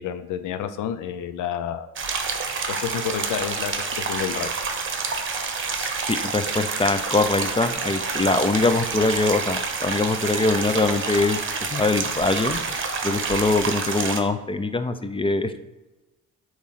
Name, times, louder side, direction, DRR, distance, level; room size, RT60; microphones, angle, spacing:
voice 1, 0.0-1.9 2.7-4.5, left 9 dB, 85° left, 10 dB, 0.7 m, -29 dB
sound 1, 2.0-14.2, right 4 dB, 40° right, 1.1 m, -28 dB
voice 2, 5.7-11.4 11.7-12.6 13.0-15.5, left 3 dB, 20° left, 10 dB, 0.6 m, -23 dB
8.4 x 3.2 x 5.7 m, 1.1 s
cardioid pair, 90°, 30 cm